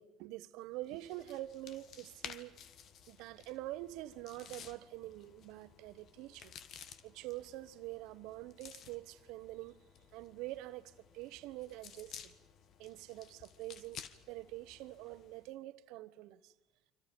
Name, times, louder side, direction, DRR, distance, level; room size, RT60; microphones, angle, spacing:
voice 1, 0.0-2.6 3.1-6.5 7.0-9.8 10.1-12.3 12.8-16.5, right 16 dB, 75° right, 1.2 m, -46 dB
sound 1, 0.8-15.5, left 8 dB, 60° left, 1.5 m, -55 dB
30.0 x 25.5 x 5.3 m
hypercardioid pair, 70°, 0 cm